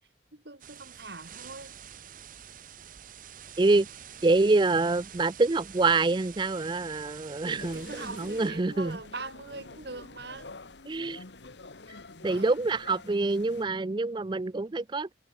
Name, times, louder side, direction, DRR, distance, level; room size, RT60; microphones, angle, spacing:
voice 1, 0.3-1.7 7.4-10.5 12.3-12.6, right 3 dB, 60° right, 3.2 m, -42 dB
sound 1, 0.6-8.5, right 9 dB, 45° right, 1.0 m, -47 dB
voice 2, 3.6-3.9 4.2-9.0 10.9-11.2 12.2-15.1, right 3 dB, 25° right, 0.4 m, -26 dB
sound 2, 7.6-13.7, left 3 dB, 70° left, 1.5 m, -47 dB
head